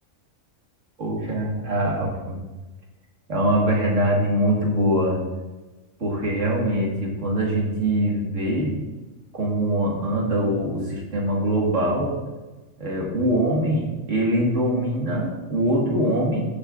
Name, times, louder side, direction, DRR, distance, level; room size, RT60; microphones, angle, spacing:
voice 1, 1.0-2.4 3.3-5.2 6.0-8.7 9.3-12.1 12.8-16.4, right 1 dB, 65° right, -2 dB, 2.0 m, -23 dB
14.0 x 6.7 x 2.5 m, 1.2 s
omnidirectional pair, 1.4 m